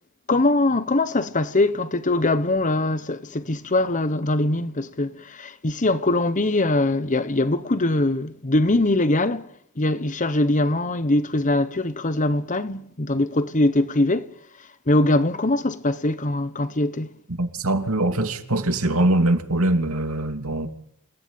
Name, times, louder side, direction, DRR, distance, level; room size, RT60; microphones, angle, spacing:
voice 1, 0.3-9.5 9.8-14.3 14.9-17.1, left 2 dB, 35° left, 1.2 m, -22 dB
voice 2, 17.4-20.7, right 1 dB, 70° right, 2.8 m, -22 dB
28.5 x 18.5 x 8.9 m
head